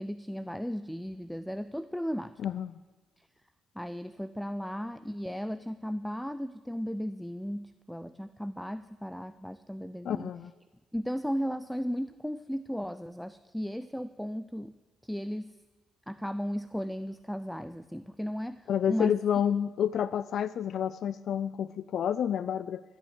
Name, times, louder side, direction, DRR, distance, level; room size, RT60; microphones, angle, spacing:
voice 1, 0.0-2.3 3.2-3.3 3.8-10.3 10.9-14.7 15.0-15.5 16.1-19.1, equal, ahead, 13 dB, 0.5 m, -35 dB
voice 2, 2.4-2.8 10.0-10.5 18.7-22.8, left 9 dB, 65° left, 17 dB, 0.4 m, -29 dB
13.5 x 8.8 x 8.2 m, 1.3 s
cardioid pair, 90°, 0 cm